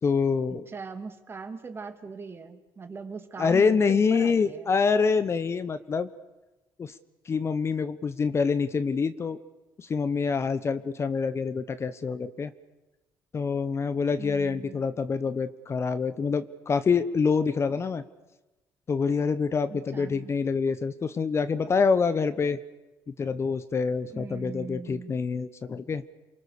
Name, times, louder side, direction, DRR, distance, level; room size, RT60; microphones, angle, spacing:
voice 1, 0.0-0.7 3.4-6.1 6.8-7.0 7.2-9.4 9.8-12.5 13.3-18.0 18.9-22.6 23.1-26.0, left 5 dB, 35° left, 13 dB, 1.2 m, -26 dB
voice 2, 0.7-4.7 14.2-14.8 19.7-20.3 24.1-25.1, right 4 dB, 30° right, 7 dB, 2.7 m, -40 dB
28.0 x 24.0 x 6.8 m, 1.1 s
cardioid pair, 105°, 8 cm